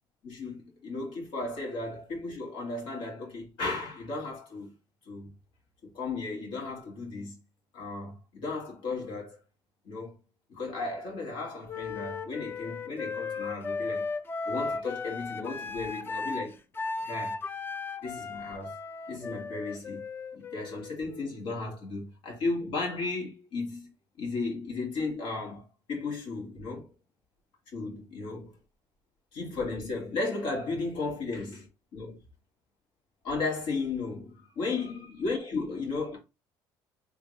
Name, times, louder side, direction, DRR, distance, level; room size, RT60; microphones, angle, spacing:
voice 1, 0.2-4.7 5.1-5.3 5.8-7.4 7.7-9.4 9.8-10.2 10.5-14.1 14.5-16.6 17.0-17.4 18.0-18.8 19.1-20.0 20.3-23.9 24.2-26.9 27.7-28.5 29.3-32.2 33.2-36.2, left 3 dB, 70° left, 2.2 m, -35 dB
Wind instrument woodwind instrument, 11.7-21.5, left 4 dB, 25° left, 0.5 m, -36 dB
3.6 x 3.6 x 3.3 m
cardioid pair, 110°, 9 cm